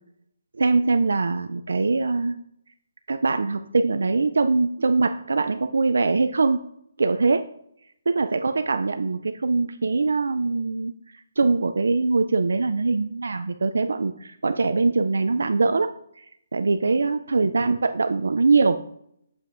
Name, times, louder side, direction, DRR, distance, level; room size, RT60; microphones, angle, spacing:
voice 1, 0.6-2.4 3.1-6.6 7.0-7.4 8.1-10.9 11.4-16.3 16.5-18.8, right 3 dB, 80° right, 8 dB, 0.3 m, -22 dB
7.0 x 5.5 x 2.5 m, 0.74 s
hypercardioid pair, 175°, 0 cm